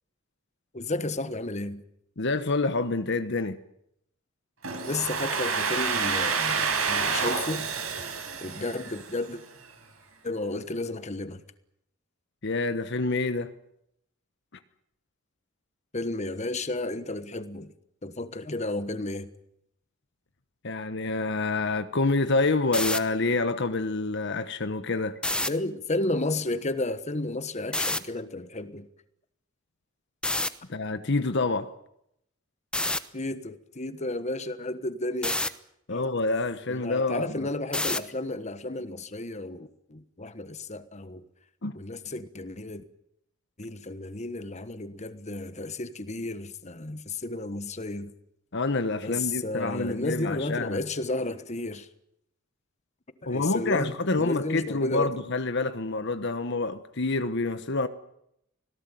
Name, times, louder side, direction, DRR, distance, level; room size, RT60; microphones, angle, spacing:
voice 1, 0.7-1.8 4.8-7.7 8.4-9.4 10.2-11.4 15.9-17.7 18.0-19.3 25.5-28.9 33.1-35.4 35.9-36.1 36.7-41.2 41.7-42.8 43.6-48.1 49.0-51.9 53.2-55.1, left 2 dB, 35° left, 1.3 m, -32 dB
voice 2, 2.2-3.6 12.4-13.5 20.6-25.2 30.7-31.7 35.9-37.5 41.6-41.7 48.5-50.8 53.3-57.9, left 3 dB, 60° left, 1.2 m, -27 dB
Domestic sounds home sounds, 4.6-9.4, right 5 dB, 90° right, 6.8 m, -29 dB
sound 1, 22.6-23.0 25.2-25.5 27.7-28.0 30.2-30.5 32.7-33.0 35.2-35.5 37.7-38.1, left 2 dB, 5° left, 0.9 m, -27 dB
25.5 x 18.0 x 9.3 m
head